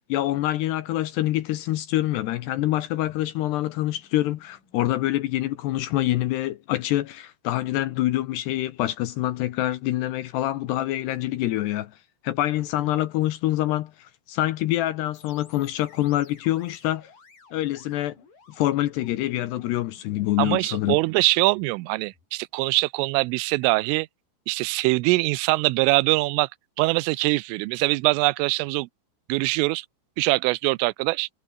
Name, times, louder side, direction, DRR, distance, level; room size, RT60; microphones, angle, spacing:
voice 1, 0.1-11.9 12.2-17.1 17.5-18.2 18.5-21.0, left 15 dB, 75° left, 2.6 m, -26 dB
sound 1, 15.1-22.3, left 4 dB, 45° left, 8.1 m, -57 dB
voice 2, 20.4-24.1 24.5-26.5 26.8-28.9 29.3-29.9 30.2-31.3, right 23 dB, 90° right, 3.2 m, -23 dB
omnidirectional pair, 5.7 m